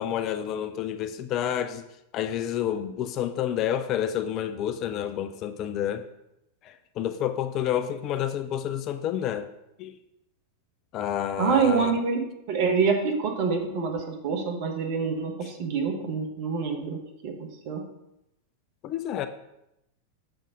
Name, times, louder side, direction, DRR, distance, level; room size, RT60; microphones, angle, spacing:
voice 1, 0.0-1.8 2.1-6.1 6.6-9.5 9.8-10.0 10.9-12.0 18.8-19.3, left 10 dB, 35° left, 9 dB, 0.4 m, -29 dB
voice 2, 11.4-12.2 12.5-17.8, right 5 dB, 45° right, 2 dB, 1.2 m, -26 dB
6.8 x 3.6 x 4.9 m, 0.85 s
figure-of-eight pair, 90°, 0 cm